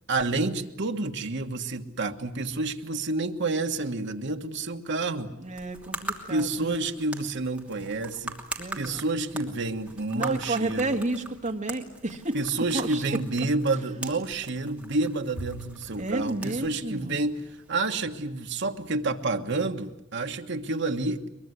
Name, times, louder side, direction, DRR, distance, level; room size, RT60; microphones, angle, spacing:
voice 1, 0.1-5.3 6.3-8.4 8.7-11.0 12.3-17.4 17.7-21.3, right 3 dB, 60° right, 5 dB, 1.5 m, -29 dB
sound 1, 5.4-17.9, right 2 dB, 5° right, 2.9 m, -42 dB
voice 2, 5.4-6.9 8.6-9.1 10.1-12.4 12.7-13.0 16.0-17.2, right 2 dB, 40° right, 3 dB, 2.1 m, -31 dB
Bowed string instrument, 15.4-17.9, right 2 dB, 80° left, 3.0 m, -45 dB
23.0 x 22.5 x 9.8 m, 0.89 s
head